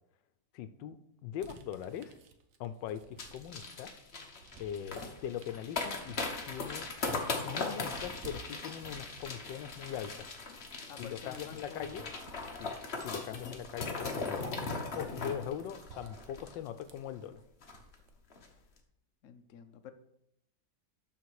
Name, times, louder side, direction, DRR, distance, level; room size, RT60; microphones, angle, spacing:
voice 1, 0.5-2.2 2.6-3.9 4.6-6.2 6.4-6.9 7.4-10.3 11.0-12.1 12.6-12.8 13.0-14.4 14.9-17.4, left 9 dB, 85° left, 12 dB, 1.3 m, -41 dB
sound 1, 1.4-3.8 4.2-18.1, right 5 dB, 55° right, 1.1 m, -55 dB
sound 2, 3.2-17.0 17.3-17.4 17.6-17.9 18.3-18.5, left 3 dB, 40° left, 1.2 m, -39 dB
voice 2, 10.9-12.1 19.2-19.9, left 7 dB, 60° left, 7 dB, 0.9 m, -49 dB
12.5 x 4.3 x 4.7 m, 0.78 s
omnidirectional pair, 2.0 m